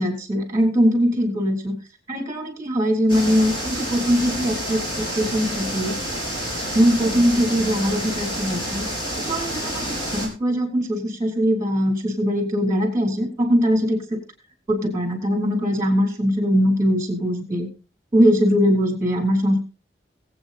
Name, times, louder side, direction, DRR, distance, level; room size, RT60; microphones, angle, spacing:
voice 1, 0.0-1.8 2.1-6.0 6.7-8.8 9.3-14.2 14.7-17.7 18.1-19.6, equal, 15° right, 3 dB, 3.4 m, -21 dB
sound 1, 3.1-10.3, equal, 25° left, 4.6 m, -29 dB
22.0 x 8.4 x 2.7 m, 0.32 s
head